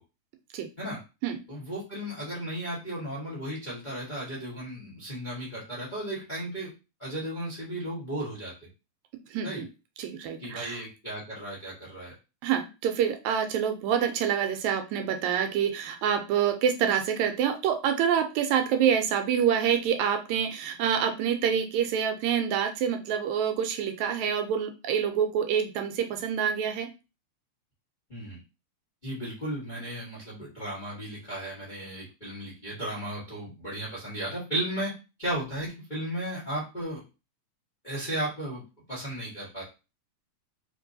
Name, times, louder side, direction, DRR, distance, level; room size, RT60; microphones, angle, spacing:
voice 1, 1.5-6.7 7.0-8.5 9.4-9.6 10.4-12.1 28.1-28.4 29.0-34.9 35.2-37.0 37.8-38.6 38.9-39.6, right 1 dB, 40° left, -7 dB, 0.6 m, -35 dB
voice 2, 9.3-9.7 10.0-10.8 12.4-26.9, right 8 dB, 80° right, 6 dB, 1.9 m, -27 dB
4.4 x 2.9 x 2.7 m, 0.29 s
omnidirectional pair, 3.4 m